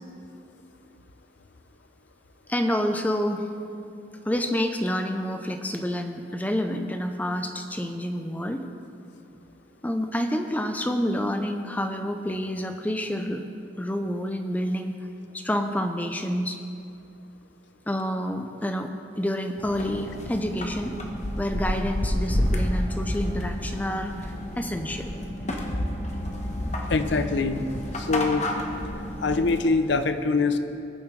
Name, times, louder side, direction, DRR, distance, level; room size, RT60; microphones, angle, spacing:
voice 1, 2.5-3.5 4.2-8.6 9.8-13.4 13.8-14.9 15.3-16.6 17.9-18.9 19.2-21.0 21.4-25.1, equal, 10° left, 6 dB, 0.5 m, -28 dB
sound 1, 19.6-29.6, left 1 dB, 40° left, 1.0 m, -30 dB
voice 2, 26.9-27.7 28.0-28.5 29.2-30.6, left 3 dB, 70° left, 10 dB, 0.6 m, -23 dB
20.0 x 7.1 x 3.2 m, 2.6 s
head